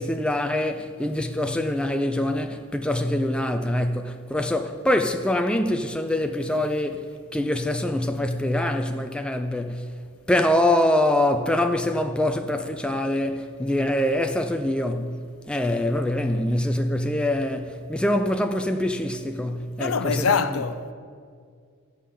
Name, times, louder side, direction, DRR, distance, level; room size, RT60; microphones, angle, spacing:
voice 1, 0.0-9.9 10.3-15.2 15.5-20.4, left 1 dB, 5° left, 0.4 m, -24 dB
voice 2, 19.8-20.9, left 5 dB, 70° left, 0.6 m, -24 dB
13.5 x 5.5 x 8.5 m
head